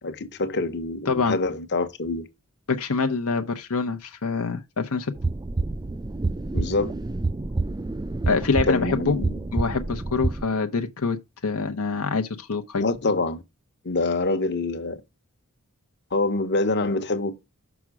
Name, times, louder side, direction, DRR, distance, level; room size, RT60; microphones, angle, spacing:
voice 1, 0.0-2.2 6.5-6.9 8.7-9.3 12.8-13.4 13.8-15.0 16.1-17.4, left 3 dB, 50° left, 1.1 m, -25 dB
voice 2, 1.1-1.4 2.7-5.1 8.3-9.2 9.5-11.2 11.4-12.9, left 4 dB, 75° left, 0.8 m, -25 dB
sound 1, 5.2-10.4, right 2 dB, 20° right, 0.4 m, -28 dB
6.1 x 6.0 x 4.8 m
head